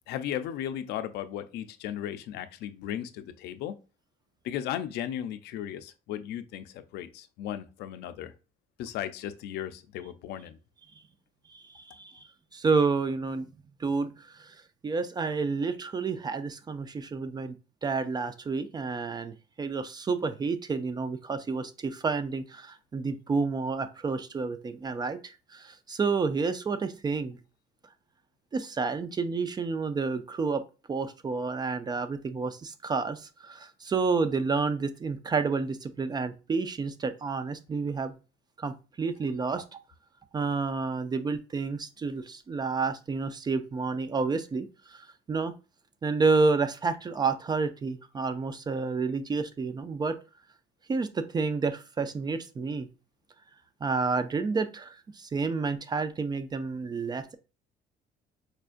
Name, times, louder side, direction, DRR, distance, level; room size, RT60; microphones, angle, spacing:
voice 1, 0.1-3.8 4.4-8.3 8.8-10.6, left 11 dB, 75° left, 0.4 m, -36 dB
voice 2, 11.5-12.2 12.5-13.5 13.8-17.5 17.8-27.4 28.5-30.6 30.9-38.1 38.6-39.8 40.3-45.5 46.0-50.2 50.9-52.9 53.8-57.4, right 4 dB, 25° right, 0.4 m, -30 dB
4.4 x 2.4 x 2.4 m
cardioid pair, 110°, 17 cm